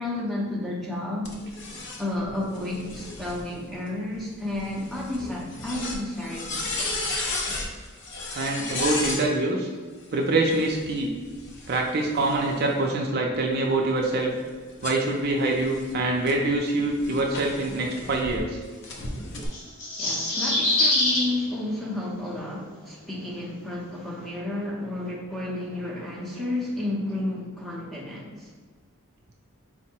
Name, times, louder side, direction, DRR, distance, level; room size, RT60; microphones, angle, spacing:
voice 1, 0.0-1.6 2.0-7.3 20.0-28.5, left 1 dB, ahead, -5 dB, 0.7 m, -32 dB
sound 1, 1.3-9.3 10.4-12.8 13.3-18.4 18.8-19.5, left 2 dB, 55° left, 0.6 m, -35 dB
voice 2, 8.3-9.7 10.1-11.1 11.7-14.3 14.8-18.6, right 2 dB, 45° right, 0 dB, 0.4 m, -25 dB
sound 2, 19.5-21.3, left 2 dB, 90° left, 1.1 m, -23 dB
4.5 x 2.1 x 4.3 m, 1.5 s
head